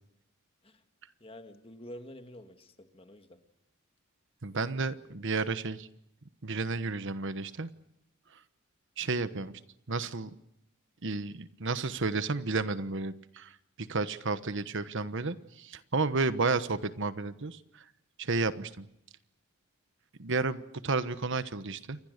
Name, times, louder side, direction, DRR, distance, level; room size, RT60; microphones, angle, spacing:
voice 1, 1.2-3.4, left 1 dB, 25° left, 7 dB, 2.0 m, -48 dB
voice 2, 4.4-5.9 6.4-7.7 9.0-9.5 9.9-10.3 11.0-13.5 13.9-17.6 18.2-18.9 20.2-22.0, right 3 dB, 60° right, 12 dB, 1.2 m, -32 dB
29.0 x 23.0 x 6.7 m, 0.78 s
head